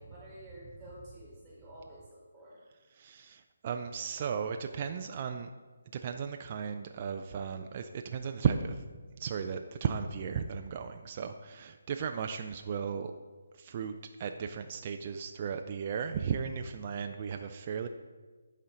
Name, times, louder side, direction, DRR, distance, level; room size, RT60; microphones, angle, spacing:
voice 1, 0.0-2.6, equal, 10° right, -6 dB, 1.8 m, -50 dB
voice 2, 3.0-5.5 6.0-8.8 9.2-13.1 13.6-13.9 14.2-17.9, right 7 dB, 35° right, 6 dB, 0.4 m, -35 dB
10.5 x 4.3 x 3.8 m, 1.4 s
figure-of-eight pair, 155°, 0 cm